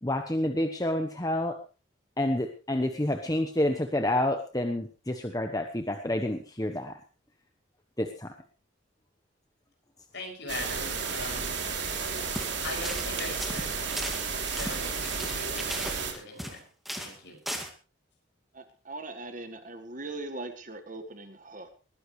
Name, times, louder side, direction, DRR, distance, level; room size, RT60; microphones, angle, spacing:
voice 1, 0.0-1.6 2.2-6.9 8.0-8.3, left 1 dB, 20° left, 5 dB, 1.1 m, -29 dB
voice 2, 10.1-11.6 12.6-13.9 14.4-16.7 17.0-17.4, left 2 dB, 60° left, 1 dB, 6.6 m, -41 dB
sound 1, 10.5-16.1, right 5 dB, 65° right, 3.2 m, -32 dB
sound 2, 12.2-12.5 12.8-13.1 13.4-16.6 16.9-17.2 17.5-17.7, equal, ahead, 2.1 m, -37 dB
voice 3, 18.5-21.7, right 2 dB, 40° right, 8 dB, 1.6 m, -40 dB
20.5 x 15.0 x 3.3 m, 0.33 s
head